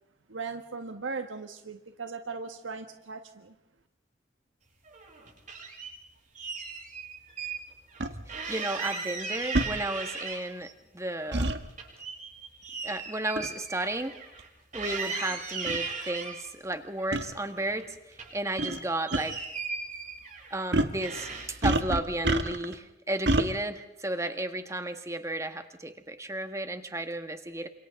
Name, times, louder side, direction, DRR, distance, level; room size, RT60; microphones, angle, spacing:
voice 1, 0.3-3.5, right 4 dB, 85° right, 6 dB, 1.6 m, -38 dB
sound 1, 4.9-5.9 6.3-7.6 7.9-8.0 8.3-10.7 11.1-14.5 14.7-16.4 17.0-17.8 18.1-20.6 21.0-21.7, right 4 dB, 40° right, 7.9 m, -37 dB
sound 2, 8.0-8.1 9.5-9.7 11.3-11.6 13.4-13.6 14.4-14.5 15.3-15.4 15.7-15.8 17.1-17.3 18.6-18.8 19.1-19.2 20.7-21.0 21.6-22.7 23.3-23.5, right 1 dB, 60° right, 1.6 m, -26 dB
voice 2, 8.3-11.5 12.8-14.2 14.7-19.4 20.5-27.7, right 1 dB, 15° right, 8 dB, 1.7 m, -33 dB
29.0 x 27.0 x 3.8 m, 0.90 s
head